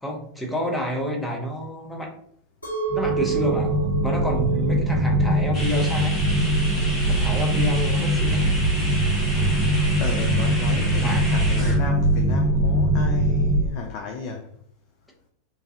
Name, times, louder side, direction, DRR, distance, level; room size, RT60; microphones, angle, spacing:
voice 1, 0.0-2.1 2.9-3.7 4.0-6.2 7.1-8.6 9.3-9.5 11.0-11.2, equal, 5° left, 0 dB, 0.7 m, -29 dB
Chink clink, 2.6-7.8, right 7 dB, 80° left, 1.1 m, -31 dB
sound 1, 2.9-13.6, right 1 dB, 45° right, 0.5 m, -22 dB
voice 2, 3.6-3.9 10.0-14.5, left 5 dB, 45° left, 3 dB, 0.3 m, -34 dB
sound 2, 5.5-11.8, equal, 25° left, 1.1 m, -33 dB
3.1 x 2.3 x 2.6 m, 0.65 s
figure-of-eight pair, 90°, 0 cm